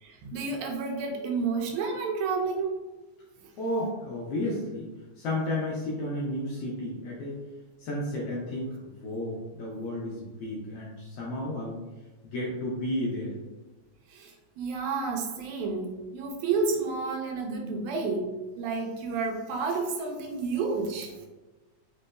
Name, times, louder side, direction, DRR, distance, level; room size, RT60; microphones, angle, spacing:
voice 1, 0.0-2.8 14.1-18.2 18.6-21.2, right 4 dB, 80° right, 1 dB, 1.9 m, -30 dB
voice 2, 3.6-4.9 5.2-7.4 7.8-11.8 12.2-13.3, left 1 dB, 75° left, -4 dB, 1.5 m, -32 dB
4.2 x 4.1 x 2.2 m, 1.2 s
omnidirectional pair, 3.4 m